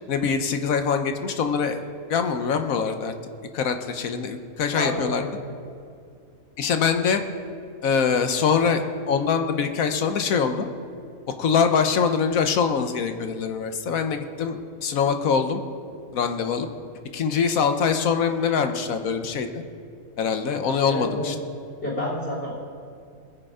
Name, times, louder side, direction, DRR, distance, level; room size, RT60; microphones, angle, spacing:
voice 1, 0.1-1.8 2.1-3.1 3.5-5.2 6.6-7.2 7.8-10.7 11.4-15.6 16.1-16.7 17.1-19.6 20.2-21.4, left 6 dB, 85° left, 7 dB, 1.3 m, -23 dB
voice 2, 4.7-5.4 20.9-21.3 21.8-22.5, left 1 dB, 55° left, -4 dB, 3.8 m, -29 dB
20.5 x 7.8 x 4.9 m, 2.3 s
omnidirectional pair, 1.4 m